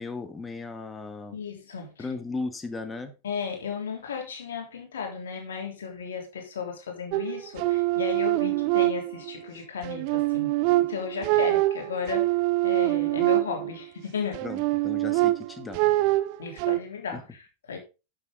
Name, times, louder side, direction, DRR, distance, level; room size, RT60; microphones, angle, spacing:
voice 1, 0.0-1.4 2.0-3.1 14.4-15.8 17.1-17.2, left 3 dB, 15° left, 1.6 m, -36 dB
voice 2, 1.3-2.0 3.2-10.5 10.8-12.3 12.6-14.4 16.4-17.8, left 6 dB, 65° left, 3.5 m, -35 dB
sound 1, 7.1-9.4 9.8-13.8 14.3-16.8, right 18 dB, 45° right, 0.6 m, -25 dB
11.0 x 7.4 x 3.9 m
figure-of-eight pair, 90°, 0 cm